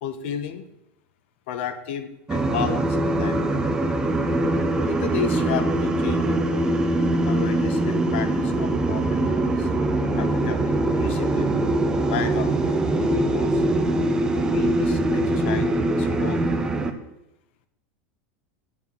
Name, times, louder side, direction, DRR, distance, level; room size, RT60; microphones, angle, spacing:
voice 1, 0.0-0.7 1.5-3.4 4.8-6.8 7.3-9.7 10.1-11.5 12.1-13.6 14.3-16.4, left 8 dB, 70° left, 11 dB, 1.2 m, -33 dB
sound 1, 2.3-16.9, right 2 dB, 10° right, 0.7 m, -22 dB
9.4 x 5.9 x 7.4 m, 0.87 s
supercardioid pair, 155°, 6 cm